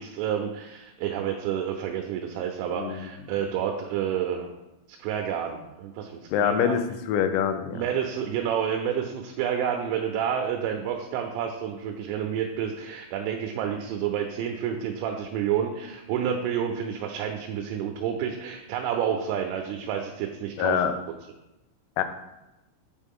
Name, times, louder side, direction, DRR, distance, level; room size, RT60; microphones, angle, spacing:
voice 1, 0.0-4.5 4.9-6.8 7.7-20.8, right 8 dB, 85° right, 3 dB, 3.1 m, -29 dB
voice 2, 2.8-3.1 6.3-7.8 20.6-20.9 22.0-22.1, left 8 dB, 90° left, 8 dB, 3.4 m, -25 dB
8.3 x 4.6 x 3.6 m, 0.97 s
omnidirectional pair, 6.0 m